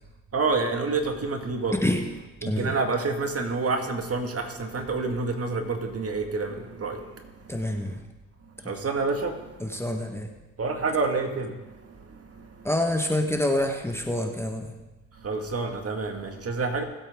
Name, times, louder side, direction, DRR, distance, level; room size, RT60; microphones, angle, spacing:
voice 1, 0.3-1.8 2.4-7.0 8.7-9.3 10.6-11.5 15.2-16.8, right 3 dB, 40° right, 4 dB, 2.1 m, -28 dB
voice 2, 1.7-2.0 2.5-2.8 7.5-8.0 9.6-10.3 12.6-14.7, left 1 dB, 5° left, 3 dB, 1.4 m, -27 dB
20.0 x 8.4 x 3.8 m, 1.1 s
hypercardioid pair, 55°, 37 cm